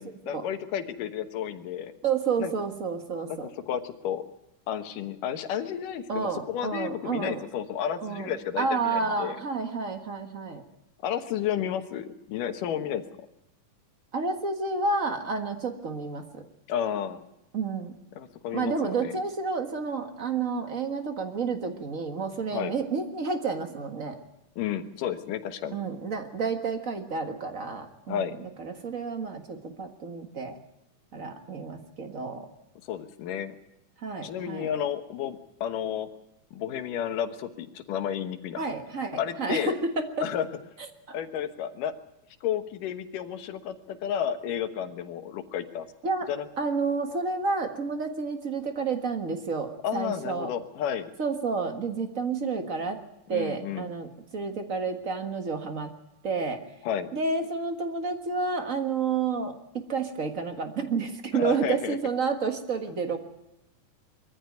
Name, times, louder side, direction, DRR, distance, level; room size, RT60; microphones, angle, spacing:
voice 1, 0.0-1.9 2.4-2.5 3.3-4.2 4.7-9.4 11.0-13.0 16.7-17.2 18.2-19.2 22.5-22.7 24.6-25.8 28.1-28.3 32.8-33.5 34.2-36.1 36.5-38.7 39.2-39.8 40.2-40.5 41.1-41.9 42.4-45.9 46.3-46.5 49.8-51.1 53.3-53.9 56.8-57.1 61.3-62.0, left 9 dB, 85° left, 8 dB, 2.8 m, -32 dB
voice 2, 2.0-3.5 6.1-7.4 8.0-10.6 14.1-16.4 17.5-17.9 18.5-24.2 25.7-30.6 31.1-32.5 34.0-34.7 38.6-40.3 41.1-41.2 46.0-46.3 46.6-50.5 51.2-53.0 53.3-55.9 56.2-56.6 57.1-59.6 59.9-63.2, right 4 dB, 40° right, 6 dB, 1.2 m, -30 dB
22.5 x 14.5 x 9.3 m, 0.86 s
omnidirectional pair, 3.7 m